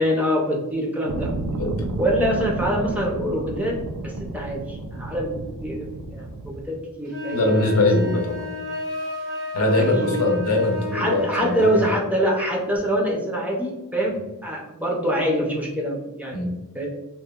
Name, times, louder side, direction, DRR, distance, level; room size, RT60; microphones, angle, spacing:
voice 1, 0.0-1.3 2.0-7.7 9.8-10.1 10.9-16.4 16.7-16.9, equal, 5° right, -2 dB, 0.4 m, -25 dB
sound 1, 1.1-6.7, right 2 dB, 90° right, 0.4 m, -31 dB
sound 2, 7.1-12.0, left 3 dB, 55° right, 0.7 m, -32 dB
voice 2, 7.3-8.5 9.5-11.6 16.3-16.6, left 2 dB, 70° left, 1 dB, 0.6 m, -21 dB
2.8 x 2.1 x 2.2 m, 1.0 s
head